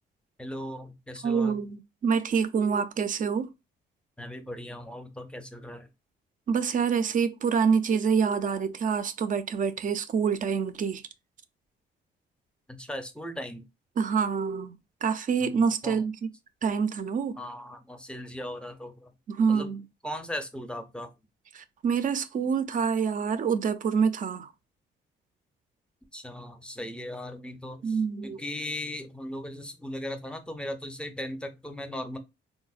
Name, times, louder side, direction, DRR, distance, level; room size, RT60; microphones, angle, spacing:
voice 1, 0.4-1.6 4.2-5.9 12.7-13.7 15.4-15.5 15.8-16.0 17.4-19.1 19.5-19.7 20.0-21.1 26.1-32.2, left 1 dB, 5° left, 0.6 m, -38 dB
voice 2, 1.2-3.5 6.5-11.0 14.0-14.8 15.0-16.1 16.6-17.4 19.3-19.8 21.5-24.5 27.8-28.4, right 6 dB, 40° right, 0.4 m, -26 dB
3.9 x 2.0 x 2.4 m
cardioid pair, 90°, 20 cm